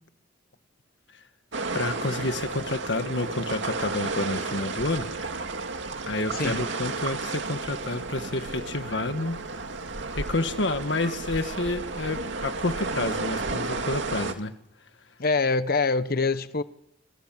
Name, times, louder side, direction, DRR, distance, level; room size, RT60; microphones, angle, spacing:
sound 1, 1.5-14.3, right 3 dB, 80° right, 2.3 m, -32 dB
voice 1, 1.7-5.1 6.0-9.4 10.1-14.5, left 2 dB, 70° left, 1.6 m, -29 dB
voice 2, 6.3-6.6 15.2-16.6, left 3 dB, 50° left, 1.1 m, -24 dB
27.0 x 26.0 x 7.6 m
head